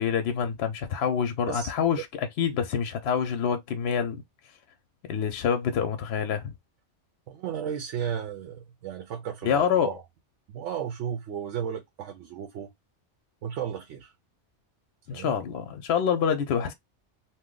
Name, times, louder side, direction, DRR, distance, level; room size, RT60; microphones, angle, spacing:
voice 1, 0.0-4.2 5.1-6.5 9.4-10.0 15.1-16.7, left 7 dB, 65° left, 0.8 m, -26 dB
voice 2, 7.3-10.0 10.5-12.7 13.4-14.1 15.1-15.4, right 8 dB, 80° right, 0.9 m, -34 dB
2.7 x 2.1 x 3.7 m
omnidirectional pair, 1.2 m